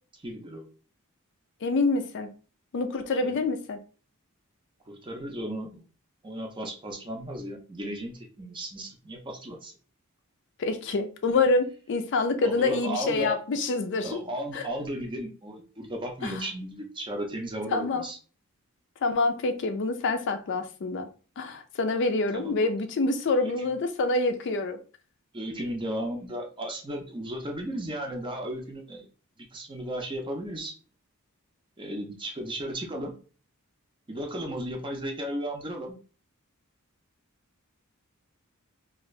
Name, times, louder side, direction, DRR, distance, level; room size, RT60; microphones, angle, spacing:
voice 1, 0.2-0.6 3.2-3.4 4.9-5.9 6.2-9.7 12.4-13.4 14.0-18.2 22.3-22.5 25.3-29.0 29.5-30.7 31.8-33.1 34.1-36.0, equal, 20° right, 0.5 m, -35 dB
voice 2, 1.6-2.3 2.7-3.8 10.6-14.2 14.5-14.7 16.2-16.3 17.7-18.1 19.0-21.1 21.4-24.8, left 3 dB, 55° left, 0.4 m, -26 dB
2.7 x 2.5 x 3.1 m
head